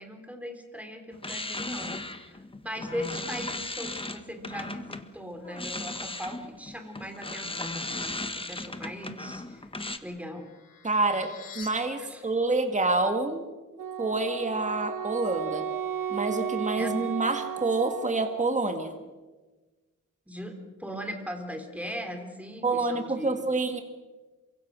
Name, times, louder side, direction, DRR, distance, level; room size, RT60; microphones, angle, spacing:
voice 1, 0.0-9.6 10.0-10.5 12.0-12.2 16.8-16.9 20.3-23.4, equal, 5° right, 4 dB, 3.5 m, -39 dB
sound 1, 1.1-5.1 5.4-10.0, left 2 dB, 15° left, 1.4 m, -36 dB
sound 2, 9.5-11.7, left 6 dB, 80° left, 4.0 m, -48 dB
voice 2, 10.8-13.5 14.0-15.6 16.1-18.9 22.6-23.8, right 3 dB, 20° right, 6 dB, 2.0 m, -27 dB
Wind instrument woodwind instrument, 13.8-18.6, right 9 dB, 90° right, 0.9 m, -34 dB
28.0 x 24.5 x 6.3 m, 1.3 s
wide cardioid pair, 120°, 32 cm